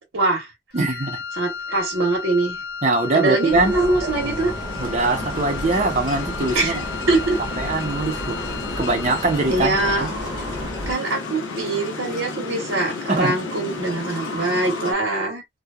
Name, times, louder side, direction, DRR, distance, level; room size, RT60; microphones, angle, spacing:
voice 1, 0.1-0.5 1.4-2.6 3.1-4.5 6.5-6.8 7.1-7.4 9.5-10.1 10.9-15.4, right 2 dB, 80° right, 0.9 m, -23 dB
Wind instrument woodwind instrument, 0.7-9.6, left 5 dB, 50° left, 0.4 m, -35 dB
voice 2, 0.7-1.2 2.8-3.8 4.8-6.7 7.6-8.4 8.8-10.1 13.1-13.3, right 2 dB, 35° right, 0.6 m, -22 dB
sound 1, 3.5-10.9, equal, 5° right, 0.9 m, -33 dB
sound 2, 4.2-14.9, left 3 dB, 80° left, 0.8 m, -32 dB
2.8 x 2.2 x 2.2 m
head